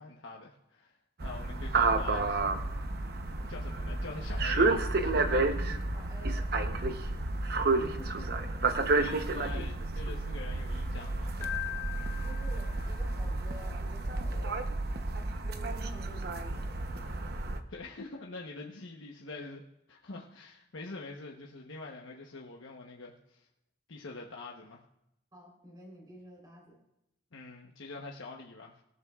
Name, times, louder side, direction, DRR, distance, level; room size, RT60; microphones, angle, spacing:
voice 1, 0.0-2.4 3.5-5.5 9.0-11.4 17.7-19.6 19.9-23.5 23.9-24.8 27.3-28.8, left 3 dB, 80° left, -1 dB, 1.1 m, -45 dB
sound 1, 1.2-17.6, right 3 dB, 50° right, 0.9 m, -31 dB
voice 2, 5.9-7.0 7.8-8.7 12.2-14.6 15.5-16.8 17.1-17.3 25.3-26.8, equal, 20° right, -2 dB, 3.7 m, -51 dB
Keyboard (musical), 11.4-13.2, left 13 dB, 15° left, 1.1 m, -40 dB
24.5 x 12.5 x 2.4 m, 0.85 s
head